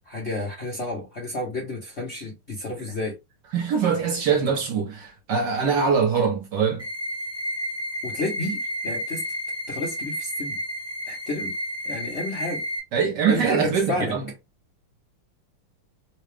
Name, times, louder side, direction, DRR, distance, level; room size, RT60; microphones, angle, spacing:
voice 1, 0.1-3.1 8.0-9.2 9.7-10.6 11.1-11.5 11.8-12.6 13.3-14.1, left 2 dB, 50° left, 0.8 m, -31 dB
voice 2, 3.5-6.8 12.9-14.2, right 6 dB, 60° right, 1.3 m, -23 dB
sound 1, 6.8-12.8, equal, 5° left, 0.5 m, -31 dB
3.8 x 2.3 x 3.2 m
omnidirectional pair, 2.3 m